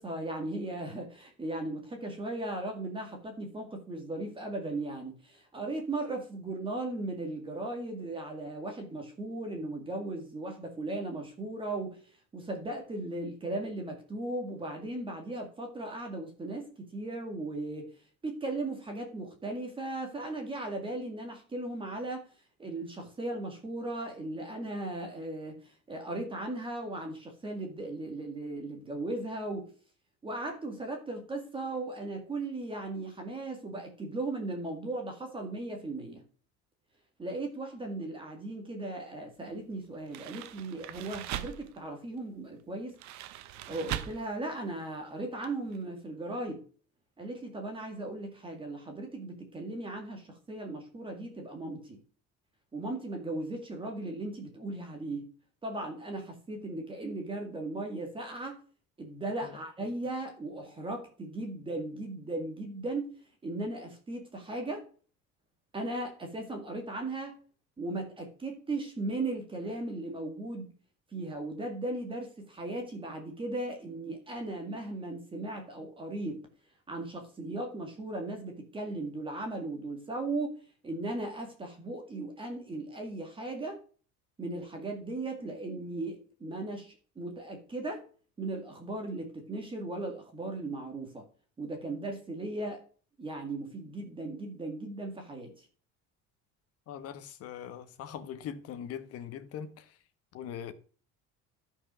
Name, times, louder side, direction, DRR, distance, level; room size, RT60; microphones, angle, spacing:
voice 1, 0.0-17.9 18.2-22.3 22.6-29.7 30.2-36.2 37.2-43.0 43.7-46.6 47.2-52.0 52.7-55.3 55.6-58.6 59.0-63.1 63.4-64.9 65.7-67.4 67.8-70.7 71.1-76.5 76.9-80.6 80.8-83.8 84.4-88.0 88.4-91.2 91.6-92.8 93.2-95.7, right 2 dB, 15° right, 1.9 m, -37 dB
sound 1, 40.0-41.8 42.9-44.3 44.6-44.8 45.4-45.5 45.7-45.8, right 13 dB, 65° right, 1.0 m, -39 dB
voice 2, 96.9-99.9 100.3-100.7, left 9 dB, 55° left, 1.2 m, -41 dB
12.5 x 5.6 x 6.2 m
cardioid pair, 170°, 30 cm